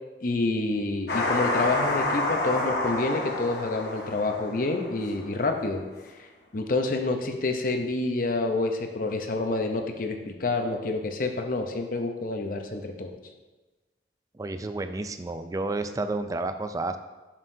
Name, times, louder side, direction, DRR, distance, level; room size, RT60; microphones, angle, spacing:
voice 1, 0.2-5.8 6.5-13.1, left 2 dB, 50° left, 5 dB, 0.7 m, -28 dB
sound 1, 1.1-5.4, left 2 dB, 65° left, 1.1 m, -28 dB
voice 2, 14.3-17.0, right 2 dB, 20° right, 9 dB, 0.3 m, -31 dB
7.2 x 6.5 x 2.7 m, 1.2 s
head